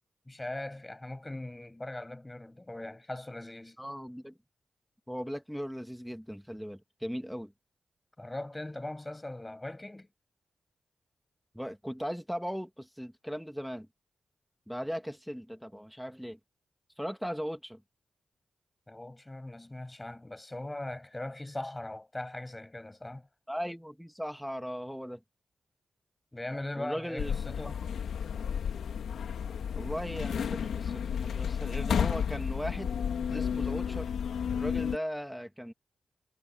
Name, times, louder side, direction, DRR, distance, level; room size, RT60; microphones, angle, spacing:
voice 1, 0.3-3.8 8.2-10.1 18.9-23.3 26.3-27.8, left 1 dB, 20° left, 7.4 m, -40 dB
voice 2, 3.8-4.3 5.1-7.5 11.5-13.9 14.7-16.4 17.0-17.8 23.5-25.2 26.8-27.3 29.7-32.9 33.3-34.1 34.5-35.7, equal, ahead, 2.2 m, -38 dB
sound 1, 27.2-35.0, left 7 dB, 85° left, 2.3 m, -32 dB
cardioid pair, 50°, 0 cm